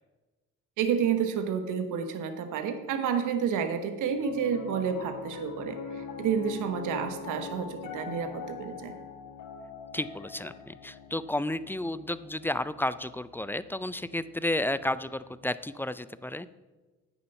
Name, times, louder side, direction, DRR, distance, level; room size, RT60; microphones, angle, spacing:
voice 1, 0.8-8.9, right 7 dB, 70° right, 8 dB, 1.2 m, -30 dB
Piano, 4.1-14.5, left 6 dB, 75° left, 1.4 m, -43 dB
voice 2, 9.9-16.5, left 1 dB, 5° left, 16 dB, 0.4 m, -32 dB
8.7 x 7.1 x 5.6 m, 1.2 s
supercardioid pair, 60°, 32 cm